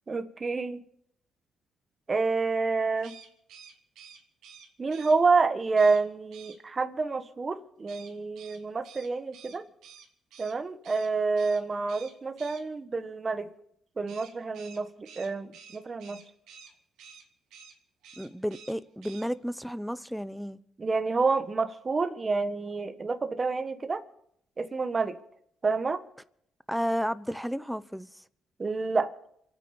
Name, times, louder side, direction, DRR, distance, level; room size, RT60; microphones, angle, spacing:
voice 1, 0.1-0.8 2.1-3.1 4.8-9.6 10.4-13.5 14.0-16.2 20.8-24.0 24.6-25.2 25.6-26.0 28.6-29.1, right 4 dB, 30° right, 1.4 m, -28 dB
sound 1, 3.0-5.2 5.7-6.0 6.3-6.6 7.9-10.5 10.8-11.1 11.3-11.6 11.9-12.6 14.1-16.7 17.0-17.2 17.5-17.7 18.0-18.7 19.0-19.3, right 7 dB, 85° right, 3.1 m, -50 dB
voice 2, 18.2-20.6 26.7-28.2, equal, ahead, 0.8 m, -32 dB
28.0 x 9.3 x 5.2 m
cardioid pair, 90°, 0 cm